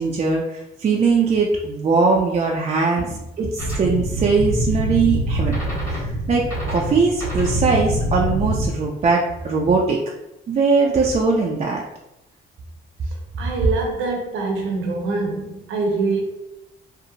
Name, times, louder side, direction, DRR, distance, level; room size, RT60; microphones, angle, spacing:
voice 1, 0.0-3.1 3.4-5.5 5.8-10.0 10.5-11.8, right 4 dB, 35° right, -1 dB, 0.4 m, -20 dB
sound 1, 3.6-8.7, equal, 15° left, 1.3 m, -24 dB
voice 2, 13.4-16.2, right 3 dB, 80° right, 1 dB, 0.7 m, -24 dB
2.7 x 2.1 x 2.7 m, 0.89 s
cardioid pair, 90°, 20 cm